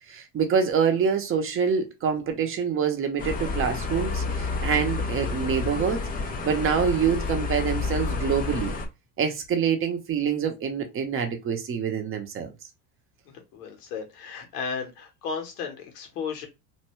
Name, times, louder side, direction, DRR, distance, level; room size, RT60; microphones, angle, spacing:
voice 1, 0.1-6.0 6.4-8.7 9.2-12.5, right 7 dB, 30° right, 0.7 m, -26 dB
sound 1, 3.2-8.9, left 4 dB, 20° left, 0.4 m, -29 dB
voice 2, 13.5-16.5, left 5 dB, 85° left, 1.2 m, -34 dB
2.6 x 2.2 x 3.0 m
supercardioid pair, 115°, 46 cm